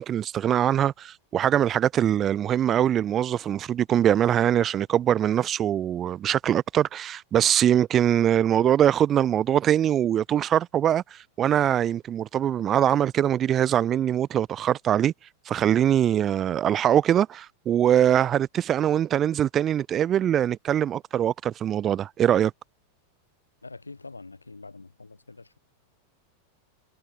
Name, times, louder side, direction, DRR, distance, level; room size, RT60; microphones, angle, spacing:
voice 1, 0.0-15.1 15.5-22.5, right 10 dB, 30° right, 2.7 m, -22 dB
voice 2, 23.6-25.6, left 3 dB, 80° left, 6.7 m, -44 dB
figure-of-eight pair, 90°, 0 cm